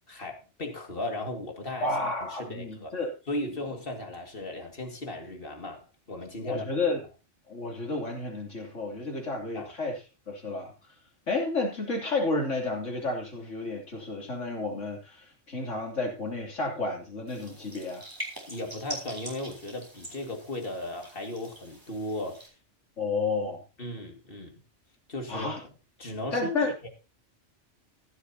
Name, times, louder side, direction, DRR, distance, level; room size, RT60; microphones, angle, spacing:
voice 1, 0.1-1.9 2.2-2.9 3.3-6.6 9.5-9.7 18.5-22.5 23.8-24.6 25.1-25.5 26.0-26.5 26.8-26.9, left 1 dB, 50° left, 3 dB, 2.6 m, -36 dB
voice 2, 1.8-3.1 6.4-7.0 7.5-10.0 10.3-10.7 11.3-18.0 23.0-23.6 25.3-25.6 26.3-26.7, left 3 dB, 80° left, 1 dB, 3.6 m, -31 dB
sound 1, 17.3-22.5, equal, 15° right, 3.6 m, -43 dB
15.0 x 12.0 x 2.9 m, 0.30 s
omnidirectional pair, 1.2 m